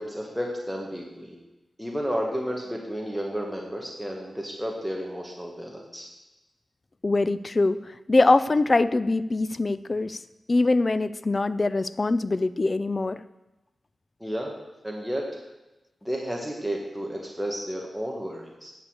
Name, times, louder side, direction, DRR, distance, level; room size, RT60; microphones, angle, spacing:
voice 1, 0.0-1.3 1.8-6.1 14.2-14.5 14.8-15.3 16.0-18.7, equal, 5° right, -1 dB, 1.6 m, -32 dB
voice 2, 7.0-10.2 10.5-13.2, left 2 dB, 35° left, 14 dB, 0.4 m, -23 dB
9.9 x 6.8 x 8.0 m, 1.0 s
wide cardioid pair, 105°, 0 cm